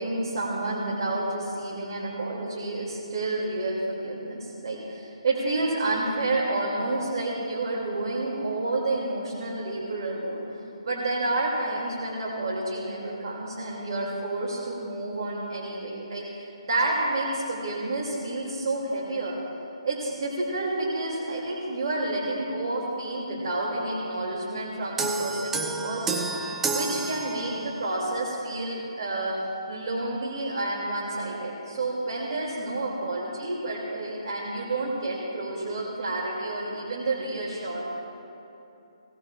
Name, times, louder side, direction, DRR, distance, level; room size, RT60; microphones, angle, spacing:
voice 1, 0.0-10.4 10.8-19.3 19.8-26.2 26.7-29.3 29.7-37.9, right 2 dB, 55° right, -4 dB, 2.7 m, -29 dB
sound 1, 25.0-27.9, right 3 dB, 10° right, 0.8 m, -30 dB
20.5 x 17.5 x 2.5 m, 2.8 s
hypercardioid pair, 150°, 3 cm